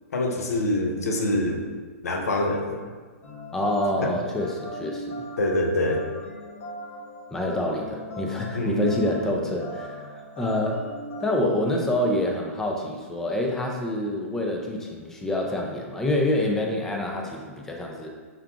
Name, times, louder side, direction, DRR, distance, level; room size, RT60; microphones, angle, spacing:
voice 1, 0.1-1.6 2.0-2.8 4.0-4.1 5.4-6.0 8.5-9.0, left 1 dB, 85° left, 3 dB, 0.7 m, -25 dB
sound 1, 3.2-11.3, equal, 60° left, 1.1 m, -39 dB
voice 2, 3.5-5.2 7.3-10.0 10.4-10.9 11.2-18.1, left 1 dB, 5° left, 1 dB, 0.4 m, -27 dB
5.8 x 2.3 x 3.6 m, 1.5 s
hypercardioid pair, 155°, 8 cm